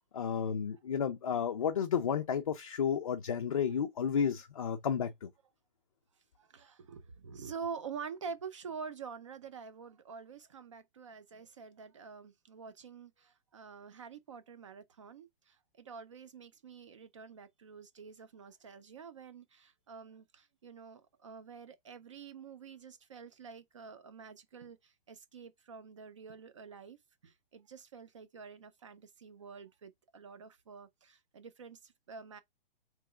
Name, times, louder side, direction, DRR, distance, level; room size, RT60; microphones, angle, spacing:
voice 1, 0.1-5.3, left 7 dB, 40° left, 0.4 m, -32 dB
voice 2, 6.4-27.0 27.2-32.4, right 6 dB, 35° right, 0.5 m, -47 dB
3.5 x 3.1 x 4.8 m
hypercardioid pair, 175°, 29 cm